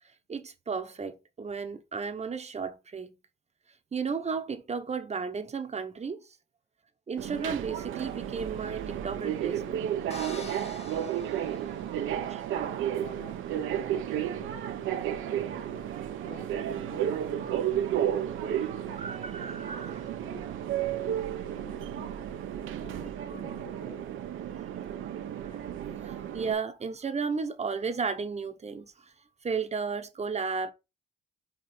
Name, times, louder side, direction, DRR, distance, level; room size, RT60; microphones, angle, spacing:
voice 1, 0.3-3.1 3.9-6.4 7.1-9.9 11.3-11.8 18.5-18.6 19.0-20.1 24.6-24.7 25.4-29.1 29.4-30.7, right 5 dB, 35° right, 1.0 m, -34 dB
Subway metro underground, 7.2-26.5, right 10 dB, 85° right, 0.9 m, -33 dB
sound 1, 10.1-12.3, left 4 dB, 30° left, 1.1 m, -47 dB
voice 2, 11.9-22.1 22.8-24.1, left 5 dB, 55° left, 2.3 m, -51 dB
5.2 x 5.0 x 4.4 m
cardioid pair, 90°, 20 cm